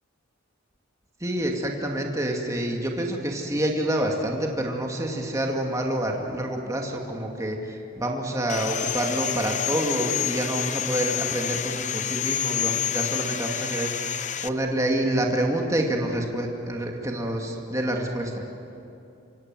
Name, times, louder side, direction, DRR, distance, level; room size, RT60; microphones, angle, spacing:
voice 1, 1.2-18.4, right 1 dB, 15° right, 0 dB, 2.2 m, -27 dB
Sawing, 8.5-14.5, left 10 dB, 35° left, 0.8 m, -28 dB
27.0 x 24.5 x 7.6 m, 2.8 s
head